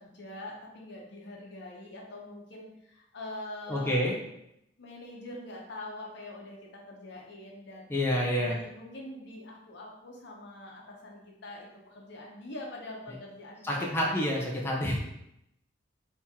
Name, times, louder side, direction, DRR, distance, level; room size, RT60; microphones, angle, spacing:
voice 1, 0.0-4.0 4.8-7.9 8.4-14.1, left 2 dB, 65° left, -1 dB, 0.7 m, -44 dB
voice 2, 3.7-4.2 7.9-8.6 13.6-15.0, equal, 15° left, -3 dB, 0.5 m, -28 dB
2.8 x 2.8 x 3.5 m, 0.82 s
head